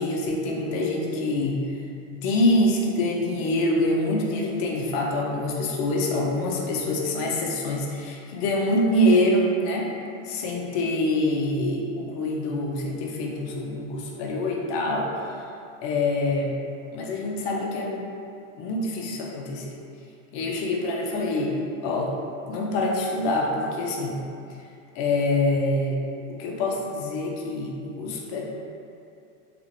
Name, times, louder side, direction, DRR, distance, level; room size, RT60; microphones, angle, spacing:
voice 1, 0.0-1.7 2.1-9.9 10.2-15.1 15.8-16.6 16.9-18.0 18.6-19.8 20.3-22.1 22.5-24.2 25.0-26.0 26.3-28.4, left 1 dB, 50° left, -1 dB, 0.6 m, -25 dB
2.9 x 2.5 x 2.6 m, 2.6 s
supercardioid pair, 120°, 39 cm